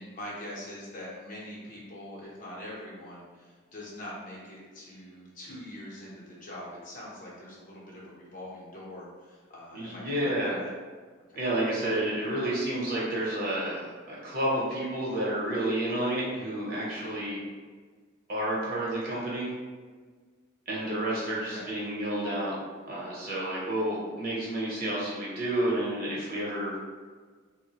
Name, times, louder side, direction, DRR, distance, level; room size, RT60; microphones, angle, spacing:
voice 1, 0.0-10.7 11.3-11.4 21.3-21.7, left 1 dB, 40° left, -6 dB, 0.7 m, -43 dB
voice 2, 9.7-10.5 11.3-17.4 18.3-19.5 20.7-22.5 22.8-26.8, right 1 dB, 45° right, -6 dB, 0.9 m, -30 dB
3.6 x 2.1 x 2.8 m, 1.5 s
head